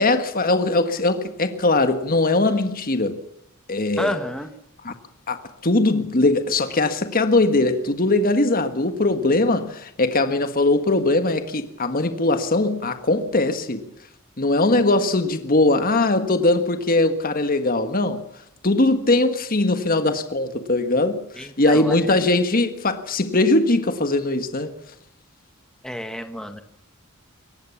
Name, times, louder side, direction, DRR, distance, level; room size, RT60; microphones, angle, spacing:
voice 1, 0.0-3.2 3.7-4.1 4.8-4.9 5.3-13.8 14.4-18.2 18.6-24.7, left 2 dB, 40° left, 1.6 m, -20 dB
voice 2, 4.0-4.5 21.4-22.0 25.8-26.6, equal, 5° left, 1.5 m, -29 dB
23.0 x 18.0 x 7.1 m
head